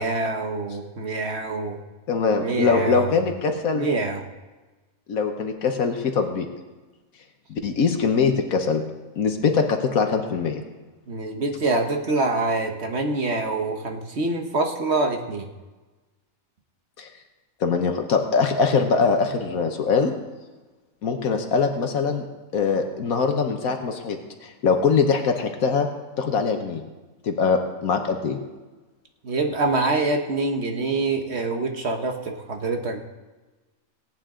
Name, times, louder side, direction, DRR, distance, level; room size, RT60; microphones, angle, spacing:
voice 1, 0.0-1.8 2.4-3.2 3.7-4.3 11.1-15.5 29.2-33.0, right 3 dB, 50° right, 4 dB, 1.4 m, -25 dB
voice 2, 2.1-3.9 5.1-6.5 7.5-8.8 9.2-10.6 17.0-17.1 17.6-20.1 21.0-22.3 22.5-25.9 26.2-26.8 27.2-28.4, left 5 dB, 75° left, 5 dB, 1.4 m, -22 dB
18.0 x 9.0 x 3.8 m, 1.2 s
omnidirectional pair, 1.5 m